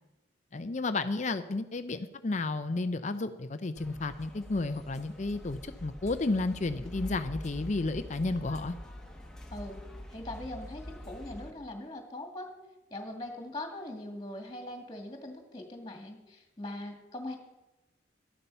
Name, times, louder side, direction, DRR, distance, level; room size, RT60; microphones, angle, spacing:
voice 1, 0.5-8.7, left 3 dB, 40° left, 10 dB, 0.5 m, -32 dB
sound 1, 3.8-11.5, left 1 dB, 5° left, 1.3 m, -45 dB
voice 2, 9.5-9.8 10.1-12.5 12.9-17.4, left 1 dB, 20° left, 4 dB, 2.2 m, -41 dB
12.5 x 11.0 x 5.6 m, 1.0 s
head